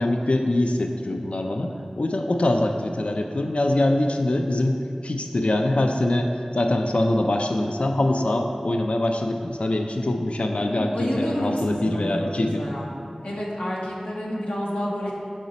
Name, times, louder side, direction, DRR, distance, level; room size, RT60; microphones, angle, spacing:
voice 1, 0.0-12.6, left 1 dB, 60° left, 4 dB, 0.3 m, -24 dB
voice 2, 10.7-12.9 13.2-15.1, equal, 90° left, -5 dB, 1.0 m, -29 dB
6.1 x 3.9 x 4.1 m, 2.4 s
wide cardioid pair, 50°, 2 cm